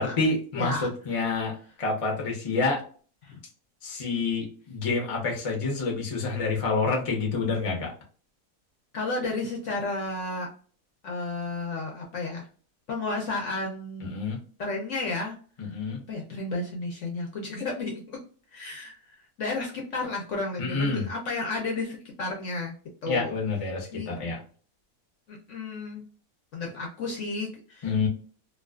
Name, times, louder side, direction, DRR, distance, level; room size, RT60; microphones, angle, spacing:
voice 1, 0.0-2.8 3.8-7.9 14.0-14.4 15.6-16.0 20.6-21.1 23.1-24.4 27.8-28.1, left 4 dB, 35° left, 0 dB, 0.5 m, -28 dB
voice 2, 0.5-0.9 1.3-1.4 3.2-3.4 8.9-10.5 11.0-12.5 12.9-14.3 14.6-15.4 16.1-18.2 18.5-19.0 19.4-22.7 23.0-23.3 23.9-24.1 25.3-26.0 26.5-27.9, left 3 dB, 65° left, 0 dB, 0.8 m, -32 dB
2.4 x 2.3 x 2.3 m, 0.42 s
omnidirectional pair, 1.7 m